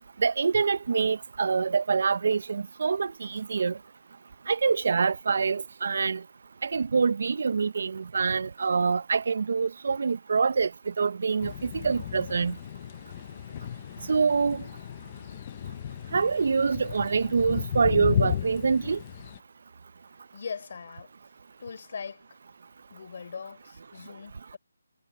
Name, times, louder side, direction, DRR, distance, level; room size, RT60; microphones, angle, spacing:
voice 1, 0.2-3.8 4.5-6.2 6.6-12.6 14.1-14.6 16.1-19.0, right 5 dB, 50° right, 0.5 m, -25 dB
sound 1, 11.4-19.4, left 10 dB, 25° left, 0.6 m, -34 dB
voice 2, 20.3-21.1 21.6-22.3 22.9-24.6, left 6 dB, 45° left, 3.5 m, -40 dB
hypercardioid pair, 170°, 0 cm